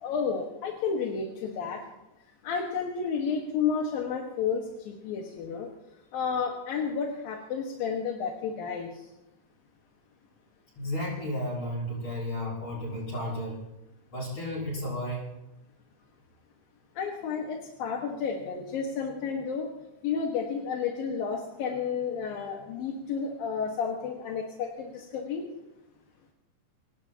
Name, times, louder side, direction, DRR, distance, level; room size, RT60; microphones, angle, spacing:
voice 1, 0.0-1.8 2.4-5.7 6.1-9.1 17.0-19.7 20.0-25.4, left 6 dB, 90° left, 0 dB, 3.4 m, -31 dB
voice 2, 10.8-13.7 14.1-15.3, left 1 dB, 45° left, -6 dB, 7.9 m, -33 dB
26.0 x 18.5 x 2.9 m, 0.95 s
omnidirectional pair, 4.0 m